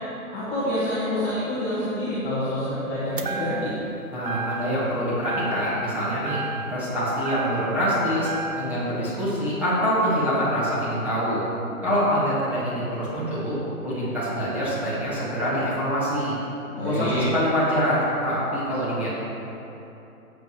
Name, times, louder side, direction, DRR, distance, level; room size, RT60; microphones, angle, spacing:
voice 1, 0.3-3.7 16.7-17.3, left 1 dB, 15° left, -11 dB, 1.7 m, -27 dB
sound 1, 3.2-3.9 4.3-4.9 5.2-5.9 6.2-7.9 8.2-8.9, right 3 dB, 35° right, 0.6 m, -33 dB
voice 2, 4.1-6.4 6.7-8.3 8.6-11.5 11.8-16.4 16.8-19.1, equal, 5° right, -11 dB, 2.0 m, -25 dB
13.0 x 8.2 x 3.2 m, 2.9 s
figure-of-eight pair, 145°, 45 cm